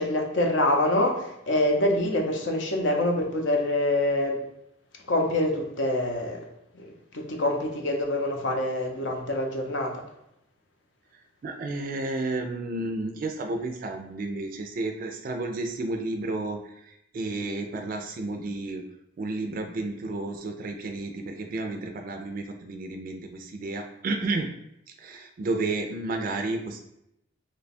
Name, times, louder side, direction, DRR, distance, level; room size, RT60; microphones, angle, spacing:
voice 1, 0.0-4.4 5.1-6.4 6.7-9.9, left 1 dB, 75° left, 2 dB, 0.6 m, -25 dB
voice 2, 11.1-18.8 19.2-24.5 24.9-26.8, right 2 dB, 50° right, 4 dB, 0.3 m, -32 dB
3.1 x 2.2 x 4.1 m, 0.81 s
head